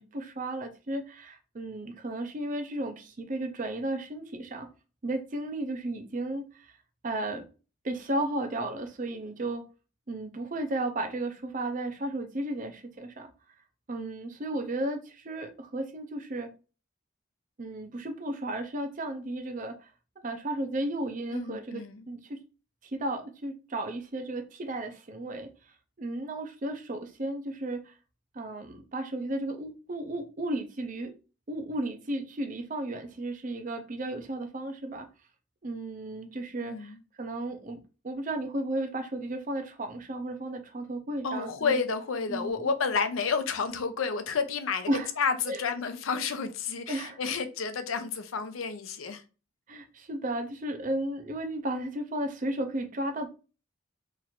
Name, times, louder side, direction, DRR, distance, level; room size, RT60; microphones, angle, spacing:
voice 1, 0.0-4.7 5.0-6.8 7.0-7.5 7.8-9.7 10.1-13.3 13.9-16.5 17.6-19.9 20.2-22.4 22.8-25.5 26.0-27.9 28.3-31.1 31.5-35.1 35.6-37.8 38.0-41.8 42.3-42.7 44.9-45.1 45.5-45.6 46.9-47.2 49.7-53.3, right 1 dB, 40° right, 0.5 m, -34 dB
voice 2, 21.3-22.0 36.6-37.0 41.2-44.9 45.2-49.2, left 5 dB, 85° left, 0.6 m, -30 dB
3.0 x 2.5 x 4.2 m
head